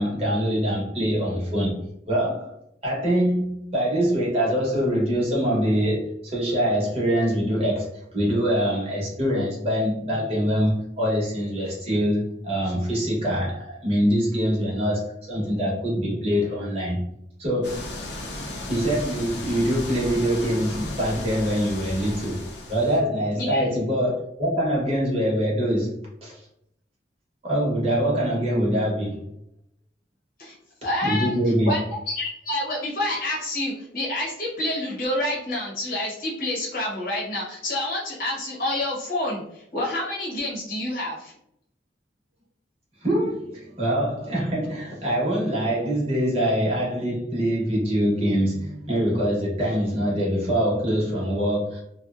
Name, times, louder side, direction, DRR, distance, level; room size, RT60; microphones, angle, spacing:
voice 1, 0.0-1.8 2.1-2.6 2.8-17.0 17.4-17.8 18.7-22.4 22.7-25.9 26.2-26.4 27.4-29.2 31.0-31.7 43.0-51.8, equal, 35° right, -5 dB, 1.0 m, -24 dB
sound 1, 17.6-23.0, left 1 dB, 75° left, 0.6 m, -35 dB
voice 2, 23.3-23.7 30.4-30.5 30.8-31.4 31.6-31.8 32.1-41.3, left 1 dB, 50° left, -5 dB, 0.9 m, -28 dB
2.7 x 2.2 x 2.4 m, 0.75 s
head